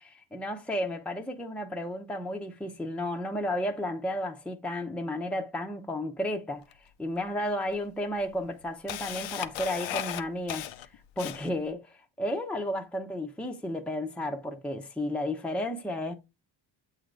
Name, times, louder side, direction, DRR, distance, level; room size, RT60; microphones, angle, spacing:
voice 1, 0.3-6.7 7.0-10.7 11.2-16.1, left 1 dB, 5° left, 0.7 m, -33 dB
Camera, 6.7-6.8 7.7-7.8 8.2-11.7, left 11 dB, 80° left, 0.7 m, -36 dB
7.8 x 3.8 x 3.3 m
cardioid pair, 125°, 45 cm